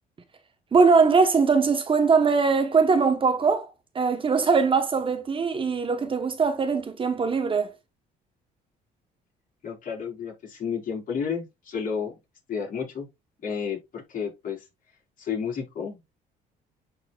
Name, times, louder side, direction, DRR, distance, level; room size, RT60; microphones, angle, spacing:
voice 1, 0.7-3.7 3.9-7.7, right 5 dB, 30° right, 1.1 m, -21 dB
voice 2, 9.6-12.1 12.5-13.1 13.4-14.7 15.2-16.0, left 6 dB, 55° left, 4.3 m, -31 dB
10.5 x 4.4 x 2.4 m
cardioid pair, 110°, 17 cm